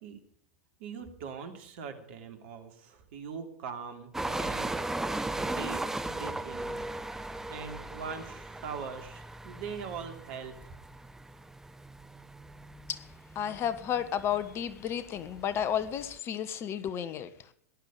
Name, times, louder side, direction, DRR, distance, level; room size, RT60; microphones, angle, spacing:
voice 1, 0.8-4.7 5.4-5.8 6.1-6.8 7.5-10.5, right 6 dB, 50° right, 3.0 m, -41 dB
sound 1, 4.1-16.2, right 2 dB, 5° right, 1.0 m, -38 dB
voice 2, 13.3-17.3, left 9 dB, 30° left, 1.3 m, -32 dB
18.5 x 12.0 x 5.0 m
figure-of-eight pair, 95°, 8 cm